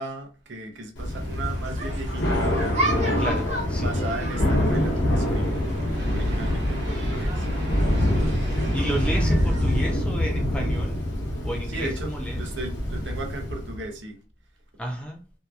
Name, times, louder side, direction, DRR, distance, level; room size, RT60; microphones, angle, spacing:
voice 1, 0.0-3.2 3.8-5.5 5.8-7.5 11.7-14.2, right 2 dB, 80° right, 0.6 m, -36 dB
Thunder / Rain, 0.9-13.8, left 1 dB, 80° left, 0.8 m, -25 dB
sound 1, 1.1-9.3, equal, 65° right, 1.1 m, -34 dB
sound 2, 1.4-9.9, right 1 dB, 40° right, 0.7 m, -35 dB
voice 2, 3.2-3.9 8.5-11.0 11.4-12.4 14.8-15.2, right 1 dB, 5° left, 0.4 m, -32 dB
2.7 x 2.4 x 2.3 m
head